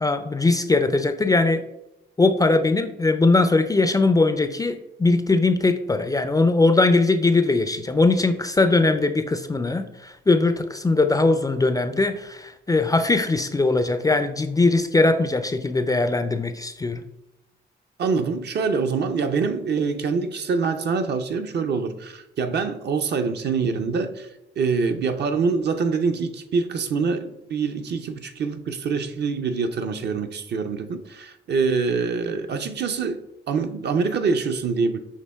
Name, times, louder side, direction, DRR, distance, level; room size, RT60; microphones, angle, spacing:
voice 1, 0.0-1.6 2.2-17.0, left 3 dB, 15° left, 0.3 m, -20 dB
voice 2, 18.0-24.3 24.6-33.2 33.5-35.0, right 5 dB, 55° right, 0.5 m, -25 dB
6.4 x 2.8 x 2.3 m
supercardioid pair, 55°, 21 cm